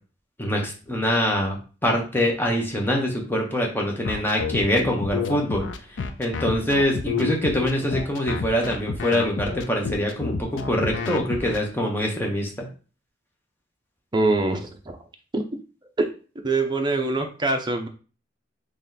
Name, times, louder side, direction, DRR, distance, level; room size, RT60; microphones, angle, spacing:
voice 1, 0.4-5.7 6.2-12.7, equal, 10° left, 0 dB, 0.8 m, -24 dB
sound 1, 4.0-11.6, left 5 dB, 75° left, 0.4 m, -29 dB
voice 2, 14.1-14.7 15.3-15.4 16.0-16.1 16.4-17.9, right 2 dB, 25° right, 4 dB, 0.6 m, -23 dB
3.1 x 2.9 x 3.9 m, 0.37 s
head